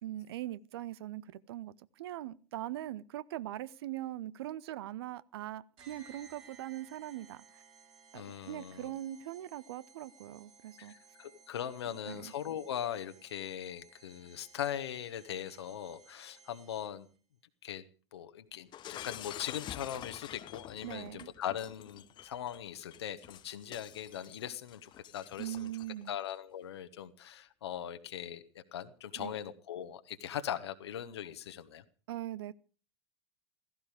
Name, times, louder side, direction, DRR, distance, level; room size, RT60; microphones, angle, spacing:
voice 1, 0.0-7.4 8.1-10.9 11.8-12.3 20.8-21.3 25.4-26.2 29.2-29.3 32.1-32.5, right 14 dB, 60° right, 0.7 m, -41 dB
sound 1, 5.8-17.2, right 5 dB, 40° right, 4.7 m, -60 dB
voice 2, 8.1-8.9 10.8-17.1 17.6-17.8 18.1-25.7 26.1-31.8, left 10 dB, 70° left, 1.3 m, -40 dB
Shatter, 18.7-26.1, left 12 dB, 30° left, 0.8 m, -48 dB
16.0 x 15.5 x 5.0 m
figure-of-eight pair, 85°, 14 cm